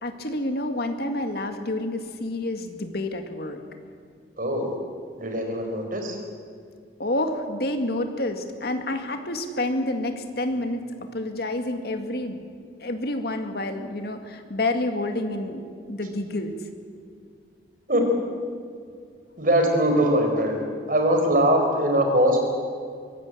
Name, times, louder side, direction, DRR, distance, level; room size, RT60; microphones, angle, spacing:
voice 1, 0.0-3.6 7.0-10.9 11.1-12.4 12.8-16.6, left 1 dB, 60° left, 6 dB, 2.1 m, -28 dB
voice 2, 4.4-4.7 5.2-6.2 17.9-18.1 19.4-20.6 20.9-22.4, equal, 50° right, 3 dB, 4.5 m, -21 dB
24.0 x 16.5 x 8.6 m, 2.3 s
head